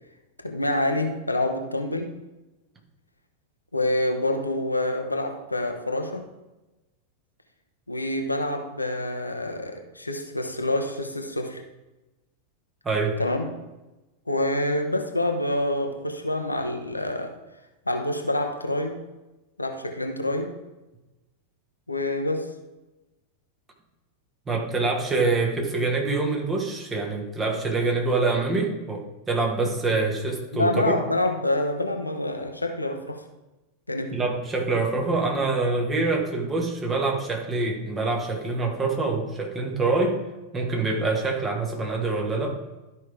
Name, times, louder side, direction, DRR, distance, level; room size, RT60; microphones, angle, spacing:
voice 1, 0.4-2.1 3.7-6.3 7.9-11.6 13.2-13.5 14.3-17.4 17.9-19.0 19.6-20.5 21.9-22.5 30.5-33.2 33.9-34.2, left 1 dB, 85° left, 5 dB, 0.8 m, -27 dB
voice 2, 12.8-13.2 24.5-30.9 34.1-40.2 40.5-42.6, right 3 dB, 20° right, 1 dB, 1.6 m, -25 dB
12.5 x 5.4 x 3.5 m, 1.1 s
figure-of-eight pair, 90°, 0 cm